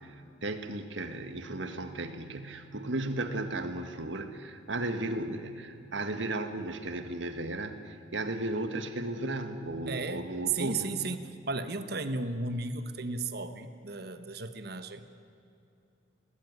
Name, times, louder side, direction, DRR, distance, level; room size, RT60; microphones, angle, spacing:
voice 1, 0.0-10.9, right 2 dB, 80° right, 8 dB, 1.8 m, -35 dB
voice 2, 9.9-10.3 10.5-15.0, right 3 dB, 55° right, 9 dB, 1.3 m, -35 dB
20.5 x 17.5 x 9.6 m, 2.7 s
head